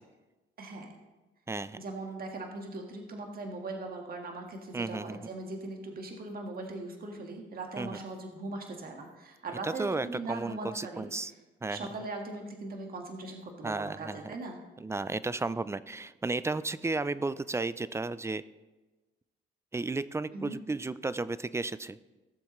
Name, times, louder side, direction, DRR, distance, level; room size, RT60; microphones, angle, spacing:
voice 1, 0.6-0.9 1.8-11.4 11.7-14.6 20.3-20.6, right 2 dB, 50° right, 2 dB, 1.6 m, -40 dB
voice 2, 1.5-1.8 4.7-5.2 7.8-8.0 9.6-11.3 11.6-11.8 13.6-14.2 14.8-18.4 19.7-22.0, right 3 dB, 15° right, 16 dB, 0.4 m, -33 dB
16.5 x 7.1 x 3.1 m, 1.2 s
cardioid pair, 90°, 20 cm